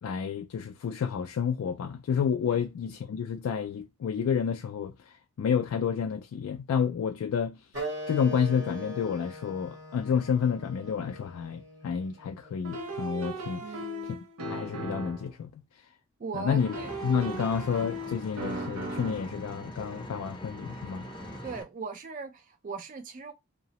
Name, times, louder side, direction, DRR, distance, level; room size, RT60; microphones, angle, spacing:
voice 1, 0.0-7.7 8.1-13.8 14.5-15.5 16.3-16.7 17.0-21.1, left 7 dB, 80° left, 0.3 m, -30 dB
Wind instrument woodwind instrument, 7.7-12.9, equal, 55° right, 1.2 m, -41 dB
sound 1, 12.6-15.3 16.6-19.3, right 1 dB, 85° right, 0.6 m, -37 dB
voice 2, 13.6-14.2 16.2-16.9 21.4-23.3, right 4 dB, 35° right, 0.3 m, -39 dB
Engine, 16.6-21.6, equal, 20° left, 0.5 m, -42 dB
2.7 x 2.0 x 2.8 m
head